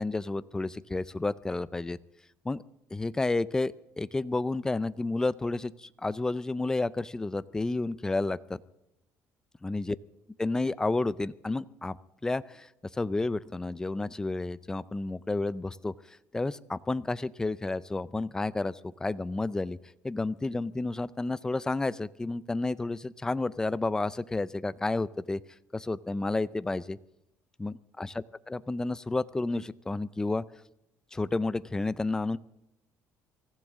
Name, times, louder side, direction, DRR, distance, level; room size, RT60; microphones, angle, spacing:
voice 1, 0.0-2.0 2.4-2.6 2.9-8.4 9.6-10.0 10.4-12.0 12.2-19.8 20.0-25.4 25.7-27.0 27.6-30.4 31.1-32.4, left 2 dB, 10° left, 16 dB, 0.5 m, -31 dB
24.0 x 15.0 x 3.7 m, 0.88 s
cardioid pair, 130°, 6 cm